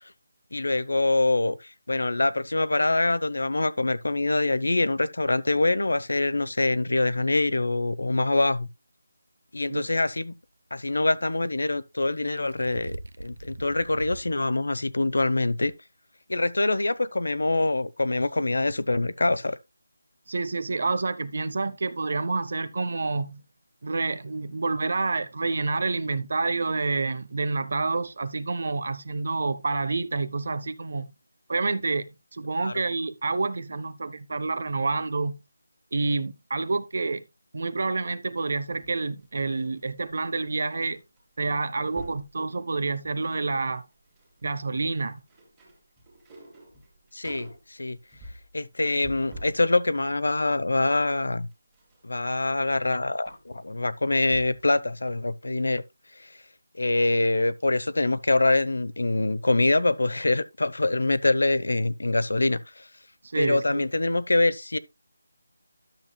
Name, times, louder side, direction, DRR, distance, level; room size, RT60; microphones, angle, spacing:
voice 1, 0.5-8.7 9.5-10.3 10.7-15.7 16.3-19.5 32.6-32.7 47.1-48.0 48.5-51.5 52.0-55.8 56.8-62.9 63.4-64.8, left 2 dB, 85° left, 0.8 m, -25 dB
sound 1, 9.9-10.0 12.0-14.3 14.8-14.9 15.6-15.7, right 2 dB, 75° right, 0.9 m, -40 dB
voice 2, 20.3-23.4 23.8-31.1 31.5-35.3 35.9-37.2 37.5-41.0 41.4-43.8 44.4-45.2 63.3-63.8, right 3 dB, 40° right, 0.8 m, -28 dB
sound 2, 38.5-40.7 40.9-41.2 41.5-42.3 42.8-43.5 43.8-49.6 50.1-54.7 55.1-55.2, right 1 dB, 5° right, 2.3 m, -47 dB
12.0 x 7.3 x 2.3 m
figure-of-eight pair, 175°, 0 cm